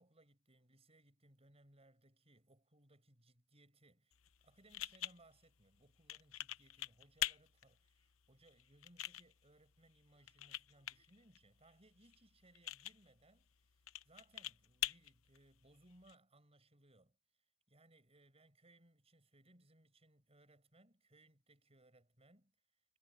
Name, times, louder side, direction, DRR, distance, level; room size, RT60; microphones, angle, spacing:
voice 1, 0.0-4.1 4.4-13.5 14.0-17.2 17.7-22.5, right 1 dB, 30° right, 6.6 m, -67 dB
sound 1, 4.1-16.1, left 13 dB, 75° left, 0.8 m, -47 dB
head